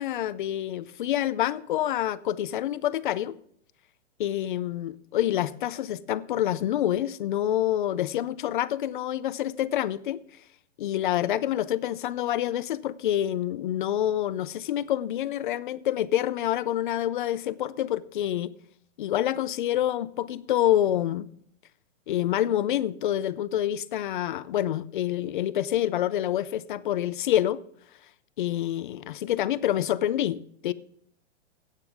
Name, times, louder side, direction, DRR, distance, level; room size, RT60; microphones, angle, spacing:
voice 1, 0.0-3.4 4.2-10.2 10.8-18.5 19.0-21.3 22.1-27.6 28.4-30.7, left 12 dB, 45° left, 0.5 m, -27 dB
14.0 x 9.0 x 3.5 m
hypercardioid pair, 160°, 36 cm